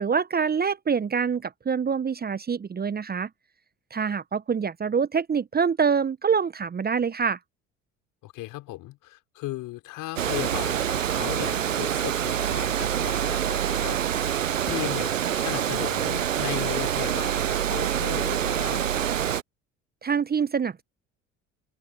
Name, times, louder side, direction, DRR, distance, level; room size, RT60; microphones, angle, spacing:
voice 1, 0.0-3.3 3.9-7.4 20.0-20.8, right 6 dB, 25° right, 1.2 m, -25 dB
voice 2, 8.2-14.4 14.6-19.1, left 18 dB, 55° left, 4.7 m, -36 dB
Water, 10.2-19.4, right 9 dB, 85° right, 0.6 m, -26 dB
open air
figure-of-eight pair, 55°, 38 cm